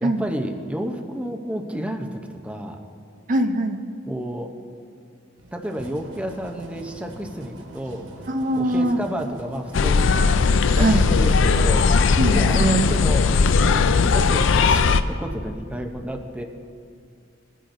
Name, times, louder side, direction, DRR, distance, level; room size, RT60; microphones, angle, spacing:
voice 1, 0.0-2.8 4.1-4.5 5.5-8.1 8.5-10.2 10.7-11.9 12.2-13.4 13.7-16.4, equal, 5° right, 3 dB, 0.7 m, -31 dB
voice 2, 3.3-3.8 8.3-9.0 10.8-11.1 12.2-12.8, right 1 dB, 45° right, 6 dB, 0.5 m, -22 dB
sound 1, 5.4-13.3, right 1 dB, 85° right, 1.2 m, -43 dB
sound 2, 9.7-15.0, left 4 dB, 85° left, 0.4 m, -18 dB
20.0 x 10.0 x 2.6 m, 2.3 s
head